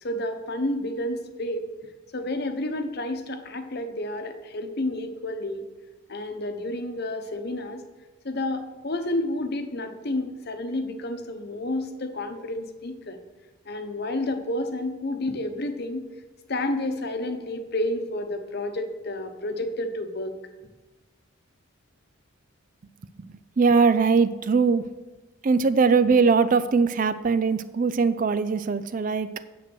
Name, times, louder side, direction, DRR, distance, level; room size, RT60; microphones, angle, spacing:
voice 1, 0.0-1.7 2.1-5.7 6.1-7.9 8.2-13.2 13.7-16.1 16.5-20.4, left 1 dB, 50° left, 7 dB, 1.0 m, -30 dB
voice 2, 23.6-24.9 25.4-29.3, right 5 dB, 40° right, 14 dB, 0.3 m, -21 dB
9.2 x 7.5 x 6.1 m, 1.2 s
head